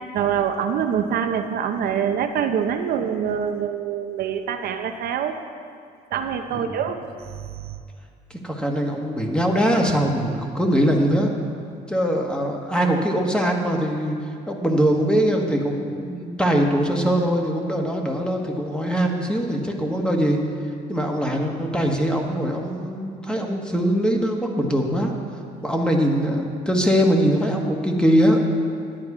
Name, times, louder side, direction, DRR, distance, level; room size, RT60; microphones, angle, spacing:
voice 1, 0.1-5.4 6.1-7.8, right 8 dB, 65° right, 6 dB, 0.7 m, -25 dB
voice 2, 8.3-11.3 11.9-14.2 14.5-20.4 20.9-25.1 25.6-28.4, equal, 5° left, 1 dB, 1.4 m, -22 dB
10.5 x 9.7 x 4.9 m, 2.3 s
cardioid pair, 110°, 17 cm